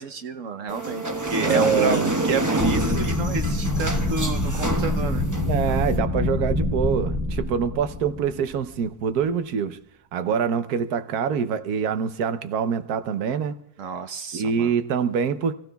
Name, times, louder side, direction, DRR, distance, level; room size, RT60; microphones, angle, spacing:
voice 1, 0.0-2.0 2.2-5.2 13.8-14.7, right 4 dB, 60° right, 1.1 m, -30 dB
sound 1, 0.7-6.0, right 1 dB, 15° right, 0.9 m, -27 dB
voice 2, 1.4-2.1 5.4-9.8 10.1-13.6 14.3-15.5, right 7 dB, 75° right, 1.3 m, -25 dB
sound 2, 2.6-8.7, left 1 dB, 10° left, 1.6 m, -26 dB
28.5 x 15.0 x 2.3 m
omnidirectional pair, 1.6 m